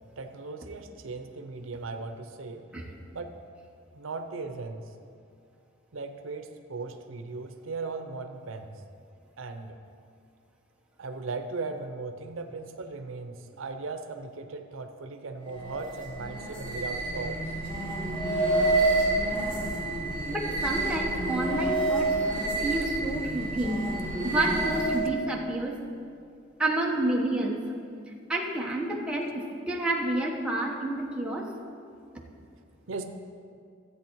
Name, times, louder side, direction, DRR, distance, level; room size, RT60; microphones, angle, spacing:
voice 1, 0.2-2.6 3.1-3.3 3.9-4.8 5.9-8.7 9.4-9.8 11.0-17.4 32.9-33.0, right 3 dB, 80° right, 7 dB, 0.7 m, -37 dB
sound 1, 15.4-25.2, right 2 dB, 30° left, 2.8 m, -28 dB
voice 2, 20.2-22.2 22.6-23.9 24.2-25.8 26.6-27.6 28.3-31.5, right 1 dB, 5° right, -2 dB, 1.1 m, -29 dB
13.5 x 8.3 x 4.6 m, 2.4 s
head